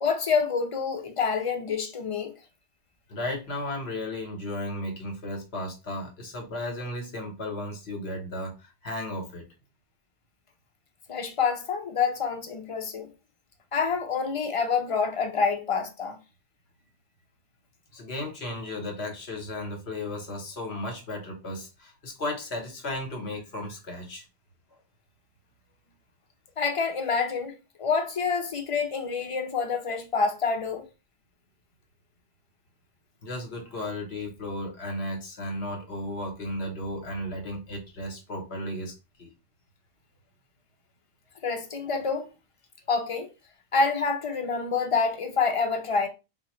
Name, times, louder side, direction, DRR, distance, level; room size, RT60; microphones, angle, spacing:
voice 1, 0.0-2.3 11.1-13.1 13.7-16.2 26.6-30.9 41.4-42.3 42.9-43.3 43.7-46.1, left 5 dB, 45° left, 0.4 m, -27 dB
voice 2, 3.1-9.4 17.9-24.2 33.2-38.9 39.2-39.3, left 1 dB, 60° left, 1.2 m, -34 dB
3.9 x 2.3 x 3.0 m
omnidirectional pair, 1.3 m